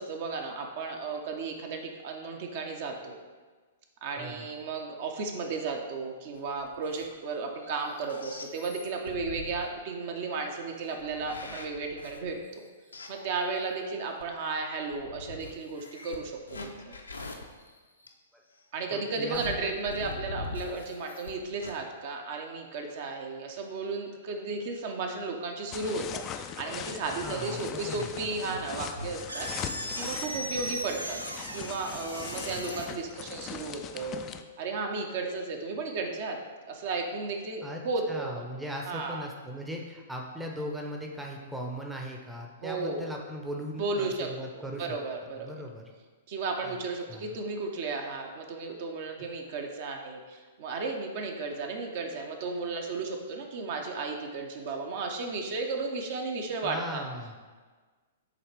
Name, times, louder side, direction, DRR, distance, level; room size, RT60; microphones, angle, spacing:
voice 1, 0.0-3.2 4.0-12.6 13.1-16.9 18.7-31.2 31.5-34.2 34.6-36.4 36.7-38.4 38.9-39.3 42.6-43.1 43.8-45.6 46.3-57.0, right 3 dB, 45° right, 3 dB, 0.8 m, -34 dB
voice 2, 4.1-4.5 18.9-19.7 27.2-28.1 37.6-37.8 38.1-45.0 45.4-45.9 46.6-46.7 47.1-47.3 56.6-57.4, equal, 5° right, 0 dB, 0.7 m, -38 dB
sound 1, 6.4-7.2 7.5-9.7 10.8-13.6 14.2-14.3 14.9-18.1 19.3-21.3 21.6-21.7, left 3 dB, 75° left, 0.7 m, -43 dB
sound 2, 25.7-34.4, left 8 dB, 25° left, 0.3 m, -40 dB
sound 3, 27.8-32.9, right 1 dB, 85° right, 0.5 m, -38 dB
7.8 x 3.2 x 4.7 m, 1.4 s
figure-of-eight pair, 110°, 0 cm